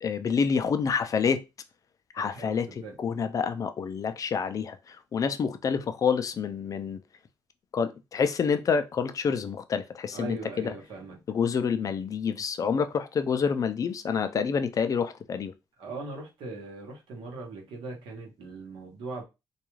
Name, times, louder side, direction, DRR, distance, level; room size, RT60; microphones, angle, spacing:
voice 1, 0.0-1.4 2.1-2.7 3.0-7.0 7.7-10.7 11.3-15.5, left 6 dB, 45° left, 0.3 m, -28 dB
voice 2, 2.2-2.9 10.1-11.2 15.8-19.2, right 3 dB, 90° right, 1.0 m, -40 dB
2.3 x 2.3 x 3.0 m
cardioid pair, 105°, 8 cm